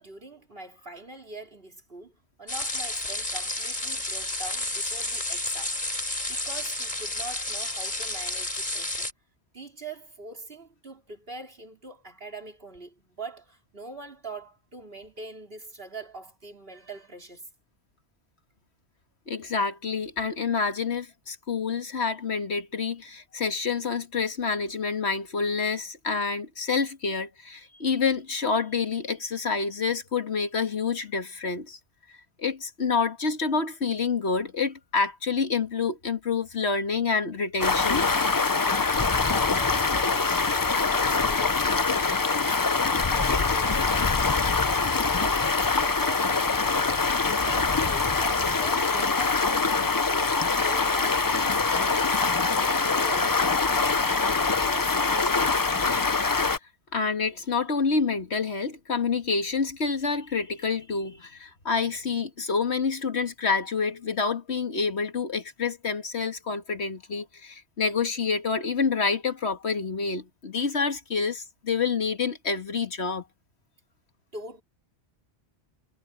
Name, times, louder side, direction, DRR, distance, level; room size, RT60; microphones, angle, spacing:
voice 1, 0.0-9.1 9.5-17.5 38.6-42.6 43.0-44.1 45.0-54.2 54.6-55.6 74.3-74.6, right 3 dB, 55° right, 4.4 m, -43 dB
sound 1, 2.5-9.1, left 1 dB, 40° left, 4.9 m, -31 dB
voice 2, 19.3-31.8 32.1-38.1 56.9-73.2, left 5 dB, 70° left, 2.0 m, -28 dB
Stream, 37.6-56.6, left 4 dB, 25° left, 0.5 m, -24 dB
omnidirectional pair, 1.1 m